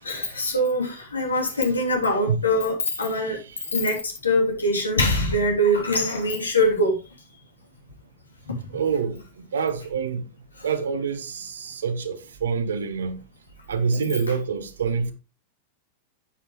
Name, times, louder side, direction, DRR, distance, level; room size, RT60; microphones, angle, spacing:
voice 1, 0.0-3.4 3.7-7.0 8.5-8.6 10.6-10.7 13.9-14.0, left 1 dB, 85° left, 3.2 m, -23 dB
voice 2, 8.7-9.2 9.5-10.2 10.6-13.2 13.7-15.1, right 5 dB, 75° right, 1.4 m, -26 dB
9.9 x 8.3 x 3.2 m
figure-of-eight pair, 95°, 0 cm